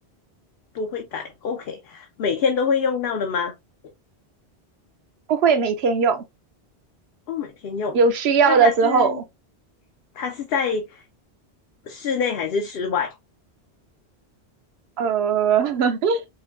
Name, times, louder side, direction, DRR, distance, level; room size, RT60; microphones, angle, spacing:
voice 1, 0.7-3.5 7.3-8.0 8.5-9.2 10.1-11.0 11.9-13.2, left 6 dB, 65° left, 0.8 m, -26 dB
voice 2, 5.3-6.2 7.9-9.2 15.0-16.2, right 5 dB, 75° right, 0.8 m, -19 dB
5.1 x 2.2 x 2.4 m
omnidirectional pair, 1.1 m